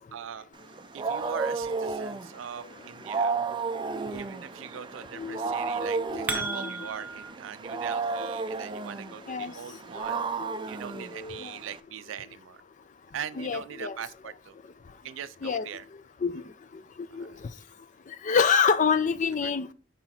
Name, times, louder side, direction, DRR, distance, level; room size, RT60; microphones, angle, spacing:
voice 1, 0.1-0.5 0.9-3.3 4.1-10.3 10.7-12.6 13.1-14.5 15.0-15.9 17.1-17.4 19.4-19.5, right 8 dB, 90° right, 0.4 m, -41 dB
Wild animals, 0.6-11.8, right 4 dB, 25° right, 0.3 m, -33 dB
voice 2, 5.2-5.5 5.8-6.7 9.3-9.5 10.1-10.6 11.0-11.5 13.4-14.0 15.4-15.7 16.2-16.4 17.1-17.3 18.2-19.7, left 6 dB, 40° left, 0.4 m, -27 dB
sound 1, 5.8-7.3, right 3 dB, 10° right, 0.7 m, -34 dB
5.6 x 4.0 x 4.2 m
head